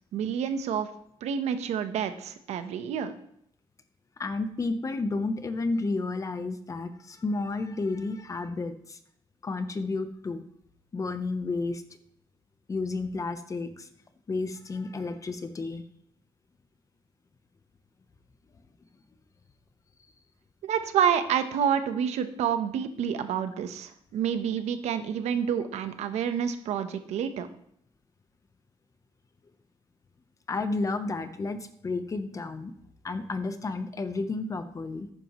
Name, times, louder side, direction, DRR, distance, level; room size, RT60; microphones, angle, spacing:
voice 1, 0.1-0.9 1.2-3.1 20.6-27.5, right 8 dB, 80° right, 9 dB, 1.1 m, -28 dB
voice 2, 4.2-9.0 9.4-10.4 10.9-11.8 12.7-13.9 14.3-15.8 30.5-32.7 33.0-35.1, left 3 dB, 30° left, 10 dB, 1.0 m, -31 dB
11.0 x 9.7 x 3.1 m, 0.68 s
cardioid pair, 105°, 11 cm